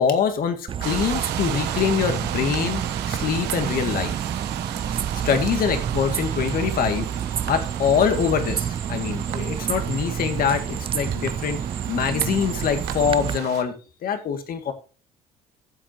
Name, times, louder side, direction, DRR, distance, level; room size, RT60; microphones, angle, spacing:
voice 1, 0.0-4.2 5.2-7.1 7.5-13.8 14.0-14.7, left 7 dB, 60° left, 7 dB, 2.0 m, -24 dB
sound 1, 0.7-13.4, right 8 dB, 30° right, 0.4 m, -29 dB
sound 2, 0.8-13.6, right 12 dB, 90° right, 1.3 m, -34 dB
14.5 x 7.6 x 2.8 m, 0.34 s
cardioid pair, 110°, 17 cm